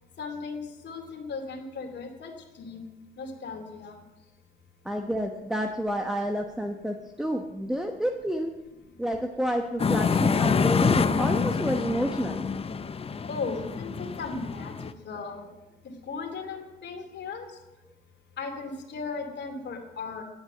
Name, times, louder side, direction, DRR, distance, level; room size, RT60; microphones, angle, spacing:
voice 1, 0.2-2.3 2.6-2.8 3.2-4.0 13.3-14.7 15.0-15.5 16.1-17.5 18.4-20.2, left 4 dB, 60° left, 3 dB, 2.7 m, -36 dB
voice 2, 4.8-8.6 9.0-12.4, equal, ahead, 4 dB, 1.0 m, -29 dB
sound 1, 9.8-14.9, left 5 dB, 30° left, 0.6 m, -26 dB
11.0 x 8.0 x 7.8 m, 0.99 s
cardioid pair, 90°, 20 cm